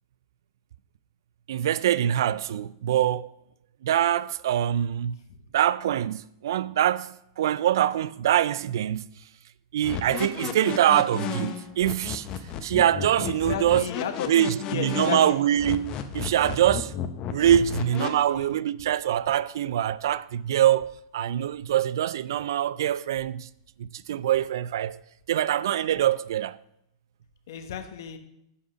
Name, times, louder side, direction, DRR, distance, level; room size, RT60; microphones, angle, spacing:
voice 1, 1.5-3.3 3.8-5.2 5.5-9.1 9.7-12.3 12.6-13.8 14.3-16.9 17.3-23.5 23.8-25.0 25.3-26.6, right 11 dB, 70° right, 0.4 m, -24 dB
sound 1, 9.8-18.1, left 8 dB, 35° left, 0.9 m, -33 dB
voice 2, 13.2-15.4 18.0-18.5 27.5-28.2, left 8 dB, 65° left, 1.1 m, -34 dB
7.9 x 5.7 x 5.7 m
hypercardioid pair, 115°, 2 cm